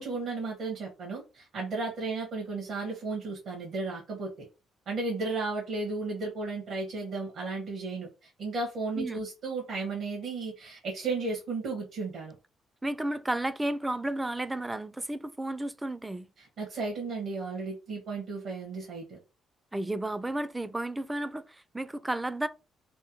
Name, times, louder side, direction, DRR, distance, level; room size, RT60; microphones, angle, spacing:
voice 1, 0.0-4.3 4.9-12.4 16.4-19.2, right 3 dB, 70° right, 1.4 m, -34 dB
voice 2, 12.8-16.3 19.7-22.5, right 1 dB, 15° right, 0.4 m, -32 dB
3.4 x 2.2 x 2.9 m
supercardioid pair, 65°, 0 cm